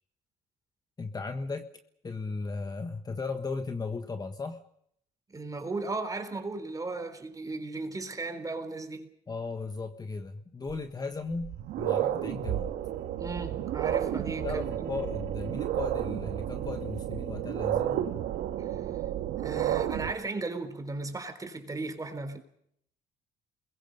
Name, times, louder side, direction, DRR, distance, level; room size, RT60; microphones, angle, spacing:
voice 1, 1.0-1.7 2.0-4.6 9.3-12.7 14.4-18.1, left 4 dB, 20° left, 1.4 m, -36 dB
voice 2, 5.3-9.1 13.2-14.9 19.4-22.4, right 3 dB, 20° right, 3.8 m, -36 dB
sound 1, 10.7-10.8 11.3-20.1, right 12 dB, 80° right, 2.0 m, -31 dB
29.5 x 22.0 x 5.4 m
cardioid pair, 110°, 17 cm